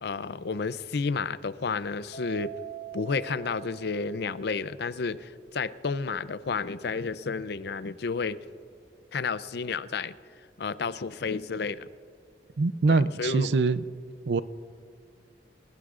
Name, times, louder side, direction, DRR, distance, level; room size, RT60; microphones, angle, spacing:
voice 1, 0.0-2.5 2.9-8.4 9.1-10.1 10.6-11.9 12.9-13.5, left 4 dB, 65° left, 14 dB, 0.5 m, -31 dB
Mallet percussion, 2.1-4.6, right 9 dB, 45° left, 1.8 m, -43 dB
voice 2, 12.6-13.8 14.3-14.4, right 3 dB, 75° right, 14 dB, 0.5 m, -24 dB
29.5 x 18.0 x 2.5 m, 2.2 s
head